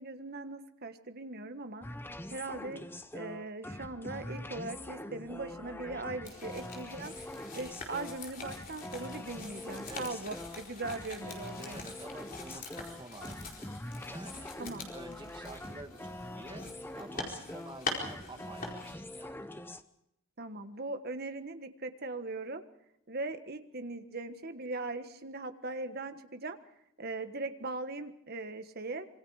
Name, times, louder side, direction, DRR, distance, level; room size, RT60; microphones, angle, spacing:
voice 1, 0.0-1.9 2.3-2.8 3.1-7.1 7.5-11.9 14.6-14.9 20.4-22.6 23.1-26.6 27.0-29.1, right 2 dB, 45° right, 8 dB, 1.4 m, -40 dB
sound 1, 1.8-19.8, left 1 dB, 10° left, 0.8 m, -44 dB
sound 2, 6.2-18.9, left 3 dB, 40° left, 4.5 m, -44 dB
voice 2, 11.5-13.8 14.1-14.6 14.9-16.7 17.0-19.5, right 2 dB, 20° right, 5 dB, 1.8 m, -49 dB
26.0 x 23.5 x 4.9 m, 0.79 s
head